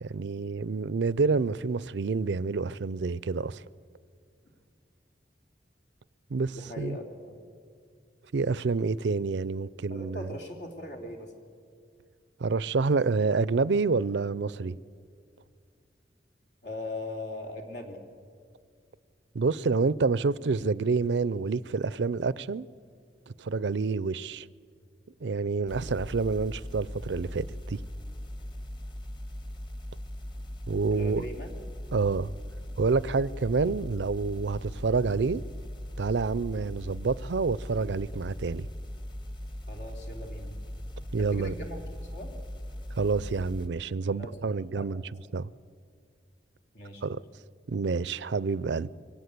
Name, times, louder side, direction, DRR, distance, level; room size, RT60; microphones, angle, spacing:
voice 1, 0.0-3.6 6.3-7.0 8.3-10.3 12.4-14.7 19.3-22.7 23.4-24.5 25.2-27.8 30.7-31.2 31.9-32.3 32.8-35.4 36.0-38.7 41.1-41.5 42.9-45.0 45.3-45.5 47.0-47.2 47.7-48.9, right 4 dB, 75° right, 0.5 m, -28 dB
voice 2, 6.5-7.4 9.9-11.3 16.6-18.0 30.9-31.5 39.7-40.5 41.2-41.8 42.1-42.3 44.1-44.3 44.7-44.9 46.7-47.1, left 1 dB, 65° left, 3.1 m, -39 dB
sound 1, 25.7-43.7, left 1 dB, 25° left, 1.6 m, -39 dB
24.0 x 17.5 x 8.3 m
head